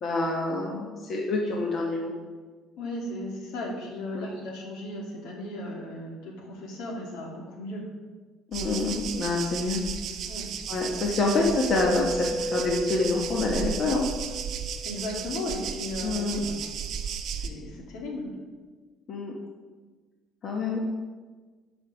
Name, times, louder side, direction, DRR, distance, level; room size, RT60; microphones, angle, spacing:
voice 1, 0.0-2.1 4.1-4.3 8.5-9.8 10.7-14.1 16.0-16.4 19.1-19.3 20.4-20.8, left 3 dB, 35° left, -1 dB, 1.1 m, -27 dB
voice 2, 2.8-7.9 10.2-10.5 14.8-16.6 17.3-18.3, left 1 dB, 75° left, -1 dB, 2.4 m, -36 dB
sound 1, 8.5-17.5, right 7 dB, 45° right, 0.7 m, -34 dB
Mallet percussion, 11.7-15.5, right 1 dB, 5° right, 1.1 m, -35 dB
12.0 x 5.3 x 4.9 m, 1.4 s
cardioid pair, 160°, 0 cm